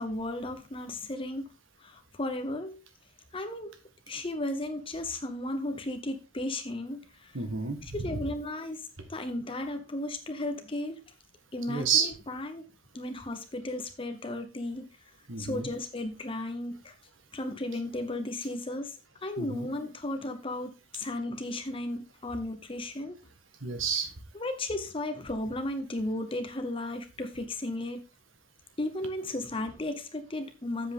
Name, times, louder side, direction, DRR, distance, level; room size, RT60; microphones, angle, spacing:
voice 1, 0.0-1.4 1.8-2.8 3.3-3.8 4.1-7.3 7.9-11.0 11.5-12.7 12.9-14.8 15.4-16.9 17.3-19.0 19.2-23.1 24.3-28.0 28.8-30.9, left 1 dB, 25° left, 7 dB, 0.8 m, -35 dB
voice 2, 7.3-8.2 11.7-12.1 15.3-15.7 19.4-19.7 23.6-24.1, right 6 dB, 75° right, 7 dB, 1.6 m, -30 dB
7.8 x 7.5 x 3.6 m, 0.29 s
head